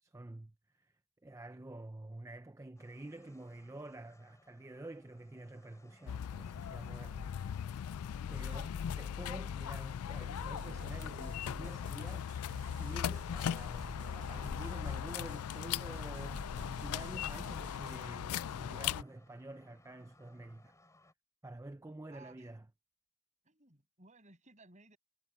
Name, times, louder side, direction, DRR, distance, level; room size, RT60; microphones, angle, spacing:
voice 1, 0.0-0.9 1.2-7.3 7.7-7.9 8.3-8.7 9.0-20.7 21.4-22.6, right 2 dB, 15° right, 0.5 m, -49 dB
sound 1, 2.8-21.1, left 1 dB, 15° left, 6.2 m, -65 dB
sound 2, 6.1-19.0, left 9 dB, 85° left, 0.4 m, -39 dB
voice 2, 8.4-8.9 22.1-22.5 23.4-25.0, right 3 dB, 35° right, 6.8 m, -60 dB
sound 3, 10.4-18.1, right 1 dB, 55° right, 2.1 m, -50 dB
head